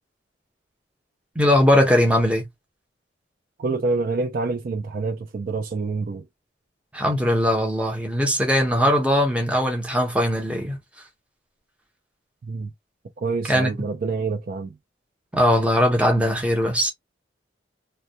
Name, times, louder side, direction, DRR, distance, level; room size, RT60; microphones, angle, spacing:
voice 1, 1.4-2.5 6.9-10.8 13.5-13.9 15.3-16.9, equal, 5° right, 0.6 m, -20 dB
voice 2, 3.6-6.2 12.5-12.7 13.2-14.7, right 3 dB, 50° right, 0.4 m, -27 dB
2.2 x 2.1 x 2.7 m
head